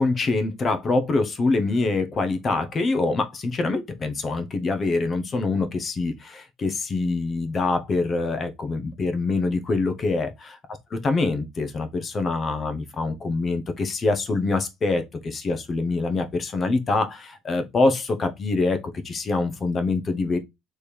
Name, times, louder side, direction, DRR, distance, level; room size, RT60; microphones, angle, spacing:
voice 1, 0.0-10.3 11.0-18.8 19.0-20.4, left 3 dB, 30° left, 0.9 m, -25 dB
3.4 x 3.3 x 4.5 m
cardioid pair, 125°, 0 cm